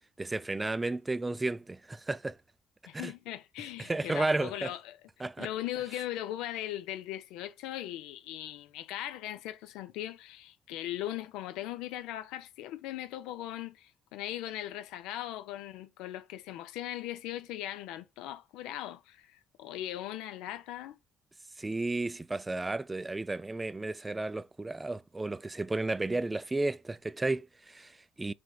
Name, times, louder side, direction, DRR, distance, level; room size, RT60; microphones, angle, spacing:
voice 1, 0.2-2.4 2.9-3.1 3.8-4.7 5.2-5.5 21.6-28.3, right 2 dB, 20° right, 0.3 m, -33 dB
voice 2, 2.9-5.0 5.4-21.0, left 13 dB, 80° left, 0.5 m, -39 dB
4.9 x 3.2 x 2.3 m
hypercardioid pair, 55°, 0 cm